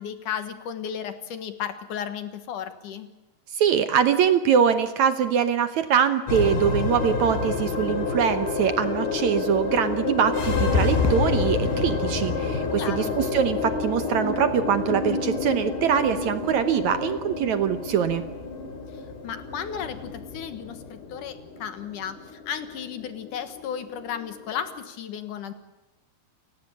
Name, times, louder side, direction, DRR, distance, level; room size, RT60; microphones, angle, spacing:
voice 1, 0.0-3.1 12.8-13.2 18.9-25.5, left 8 dB, 60° left, 10 dB, 2.8 m, -34 dB
voice 2, 3.6-18.2, right 8 dB, 65° right, 11 dB, 1.9 m, -23 dB
sound 1, 6.3-24.8, left 4 dB, 90° left, 5.3 m, -28 dB
Fireworks, 11.0-13.9, equal, 5° left, 5.7 m, -38 dB
30.0 x 15.5 x 8.5 m, 1.0 s
omnidirectional pair, 4.4 m